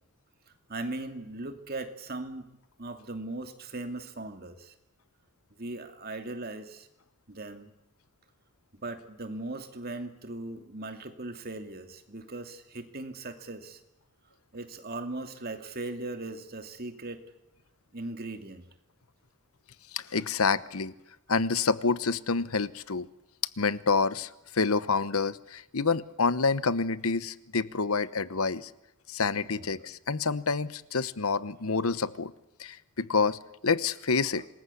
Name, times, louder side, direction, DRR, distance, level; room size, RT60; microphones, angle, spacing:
voice 1, 0.7-2.5 2.8-4.7 5.6-6.9 7.3-7.7 8.8-13.8 14.5-17.2 17.9-18.7 29.4-29.8 34.3-34.5, right 2 dB, 45° right, 7 dB, 2.6 m, -39 dB
voice 2, 19.9-20.9 21.3-23.1 23.6-28.7 29.1-32.3 32.6-34.4, left 4 dB, 75° left, 16 dB, 1.0 m, -28 dB
27.0 x 20.5 x 8.5 m, 0.89 s
head